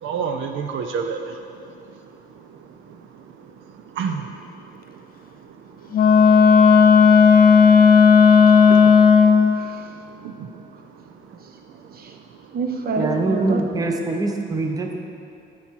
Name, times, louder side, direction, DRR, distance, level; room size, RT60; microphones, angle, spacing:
voice 1, 0.0-1.4 4.0-4.2 8.7-8.9 10.2-10.6, right 6 dB, 80° right, 5 dB, 0.5 m, -28 dB
Wind instrument woodwind instrument, 5.9-9.6, left 6 dB, 50° left, 0.4 m, -12 dB
voice 2, 8.2-8.6 9.5-9.8 11.9-12.1 12.5-13.6 13.9-14.0, right 3 dB, 50° right, 4 dB, 0.8 m, -28 dB
voice 3, 13.0-15.0, right 3 dB, 20° right, 3 dB, 0.6 m, -23 dB
9.5 x 4.3 x 4.5 m, 2.6 s
cardioid pair, 90°, 20 cm